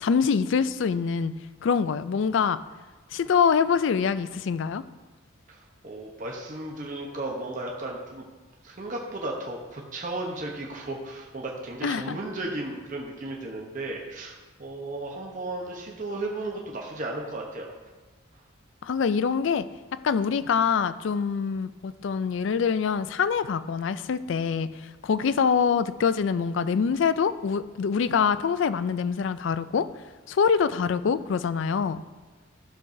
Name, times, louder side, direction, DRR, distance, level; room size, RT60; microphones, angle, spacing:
voice 1, 0.0-1.3 1.6-2.6 3.1-4.8 11.8-12.1 18.8-19.7 19.9-24.7 25.0-29.9 30.3-32.0, left 6 dB, 65° left, 14 dB, 0.3 m, -25 dB
voice 2, 5.5-8.3 8.6-14.3 14.6-17.7, right 2 dB, 40° right, -1 dB, 1.0 m, -35 dB
13.0 x 6.7 x 2.7 m, 1.3 s
head